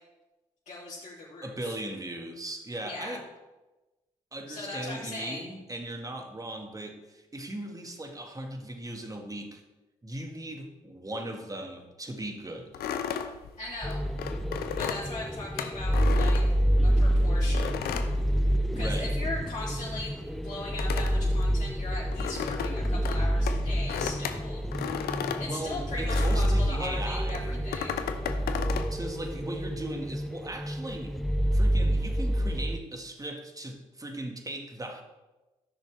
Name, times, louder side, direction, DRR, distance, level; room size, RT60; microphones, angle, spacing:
voice 1, 0.6-1.7 2.8-3.2 4.5-5.5 13.6-14.0 14.8-16.4 16.8-17.9 18.7-20.1 20.4-24.6 25.4-28.1, left 2 dB, 45° left, -9 dB, 3.2 m, -39 dB
voice 2, 1.4-3.2 4.3-9.6 10.0-12.9 18.7-19.2 25.4-27.5 28.9-31.2 31.5-35.0, right 1 dB, 20° right, 3 dB, 1.8 m, -38 dB
sound 1, 12.7-17.0 17.5-19.0 19.3-26.7 27.3-28.9, left 8 dB, 65° left, 0.7 m, -35 dB
sound 2, 13.8-32.8, equal, ahead, 0.7 m, -28 dB
14.0 x 6.3 x 3.5 m, 1.1 s
hypercardioid pair, 45°, 17 cm